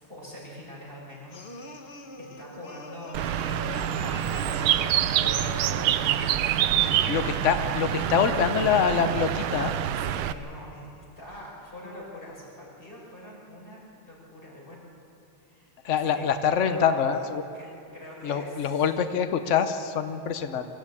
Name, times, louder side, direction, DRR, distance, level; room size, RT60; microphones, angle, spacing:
voice 1, 0.0-3.3 3.8-6.3 6.6-7.0 9.9-14.9 15.3-15.7 16.0-16.2 16.5-17.0 17.5-18.8, left 1 dB, 25° left, -4 dB, 5.9 m, -44 dB
sound 1, 1.3-6.2, left 4 dB, 40° left, 0.9 m, -43 dB
Bird, 3.1-10.3, right 10 dB, 75° right, 1.4 m, -26 dB
voice 2, 6.8-9.7 15.8-17.4 18.2-20.7, left 7 dB, 80° left, 9 dB, 0.6 m, -25 dB
24.0 x 14.5 x 8.5 m, 2.7 s
omnidirectional pair, 2.4 m